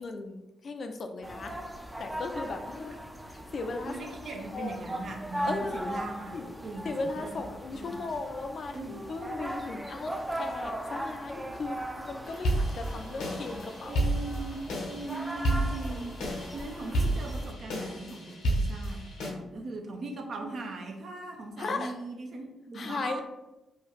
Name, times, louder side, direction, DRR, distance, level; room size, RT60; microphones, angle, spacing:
voice 1, 0.0-1.5 2.0-3.0 3.3-3.9 4.5-4.8 5.4-5.9 6.3-6.5 6.8-14.1 21.6-21.9 22.7-23.2, left 3 dB, 60° left, 6 dB, 0.4 m, -36 dB
sound 1, 1.2-17.5, right 1 dB, 10° right, 0.4 m, -39 dB
voice 2, 3.9-7.4 7.7-8.0 8.7-9.5 13.9-16.2 16.5-19.0 19.3-23.2, right 3 dB, 60° right, 3 dB, 0.6 m, -40 dB
sound 2, 12.3-19.3, right 1 dB, 85° left, 0.8 m, -31 dB
2.8 x 2.3 x 3.4 m, 1.0 s
supercardioid pair, 50°, 0 cm